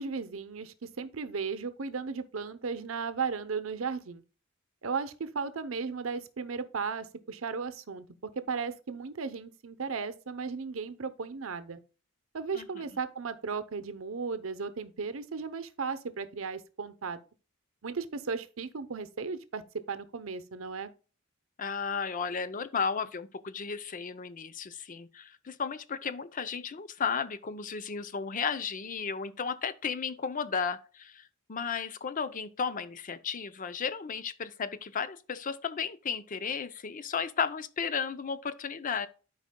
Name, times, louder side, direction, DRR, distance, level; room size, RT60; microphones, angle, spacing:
voice 1, 0.0-4.2 4.8-8.1 8.4-11.8 12.3-17.2 17.8-20.9, right 5 dB, 75° right, 0.7 m, -35 dB
voice 2, 21.6-39.1, left 6 dB, 40° left, 0.5 m, -34 dB
12.0 x 4.9 x 2.2 m
head